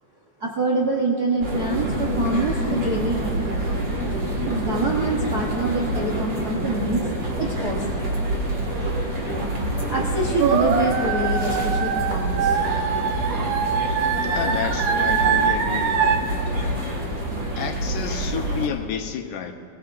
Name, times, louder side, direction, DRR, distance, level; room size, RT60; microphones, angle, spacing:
voice 1, 0.4-3.4 4.5-7.1 7.4-7.9 9.9-12.6, right 2 dB, 60° right, -4 dB, 1.0 m, -25 dB
sound 1, 1.4-18.7, right 1 dB, 30° right, 2.0 m, -26 dB
sound 2, 10.4-16.2, right 6 dB, 80° right, 2.4 m, -23 dB
voice 2, 14.3-16.2 17.6-19.5, left 7 dB, 80° left, 5 dB, 2.4 m, -30 dB
22.0 x 18.5 x 2.6 m, 2.1 s
omnidirectional pair, 3.5 m